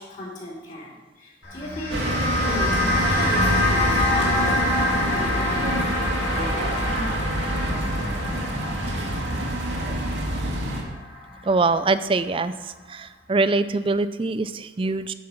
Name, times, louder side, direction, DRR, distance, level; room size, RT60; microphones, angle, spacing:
voice 1, 0.0-5.8 6.3-7.2, left 1 dB, 45° left, -6 dB, 3.1 m, -36 dB
sound 1, 1.4-12.0, left 2 dB, 75° left, 3.3 m, -26 dB
sound 2, 1.9-10.8, right 1 dB, 85° right, 1.7 m, -26 dB
voice 2, 11.4-15.1, right 3 dB, 30° right, 13 dB, 0.4 m, -23 dB
10.5 x 5.5 x 6.4 m, 1.1 s
head